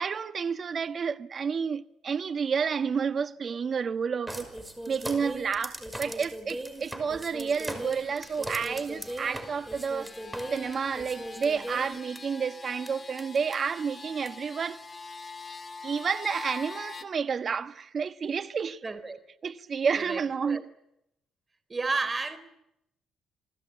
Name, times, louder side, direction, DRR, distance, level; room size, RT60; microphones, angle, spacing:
voice 1, 0.0-4.5 4.9-10.1 10.5-14.8 15.8-18.8 19.4-20.6, right 6 dB, 45° right, 1.4 m, -30 dB
sound 1, 4.3-12.2 12.9-13.0 13.2-13.5 14.2-14.3, right 1 dB, 10° right, 5.6 m, -38 dB
sound 2, 7.1-17.0, left 4 dB, 25° left, 2.6 m, -45 dB
voice 2, 18.8-19.2 20.0-20.6 21.7-22.4, right 3 dB, 30° right, 4.1 m, -32 dB
29.0 x 19.5 x 9.5 m
cardioid pair, 90°, 0 cm